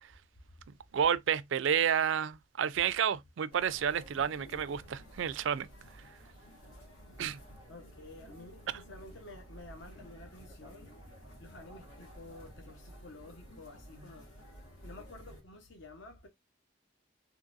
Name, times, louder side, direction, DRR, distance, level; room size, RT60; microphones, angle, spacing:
voice 1, 0.9-5.7 7.2-7.4, right 8 dB, 65° right, 0.3 m, -30 dB
sound 1, 3.5-15.4, equal, 80° left, 2.0 m, -53 dB
voice 2, 7.7-10.9 11.4-14.4 14.8-16.3, left 2 dB, 60° left, 0.8 m, -51 dB
3.9 x 2.9 x 2.4 m
head